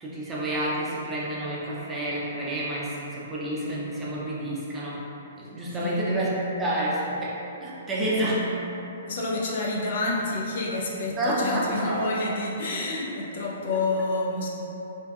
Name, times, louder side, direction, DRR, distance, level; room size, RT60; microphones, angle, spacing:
voice 1, 0.0-5.1 5.4-8.6 11.2-12.0, right 1 dB, 15° right, -7 dB, 0.6 m, -29 dB
voice 2, 9.1-14.5, left 2 dB, 60° left, -3 dB, 0.5 m, -28 dB
3.4 x 2.5 x 2.3 m, 3.0 s
hypercardioid pair, 125°, 0 cm